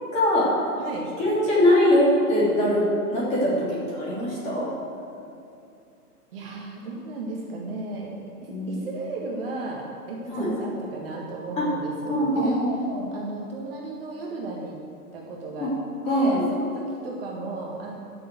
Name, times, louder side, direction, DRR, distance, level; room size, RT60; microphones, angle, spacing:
voice 1, 0.1-0.5 1.2-2.8 3.1-4.7 8.5-8.8 10.3-10.5 11.6-11.7 12.1-13.1 15.6-15.7 16.0-16.4, left 1 dB, 15° left, -7 dB, 2.9 m, -22 dB
voice 2, 0.8-1.1 6.3-8.1 8.4-12.6 13.1-14.8 15.1-15.7 16.0-18.0, right 3 dB, 40° right, -2 dB, 1.6 m, -34 dB
12.0 x 6.9 x 7.8 m, 2.6 s
hypercardioid pair, 170°, 46 cm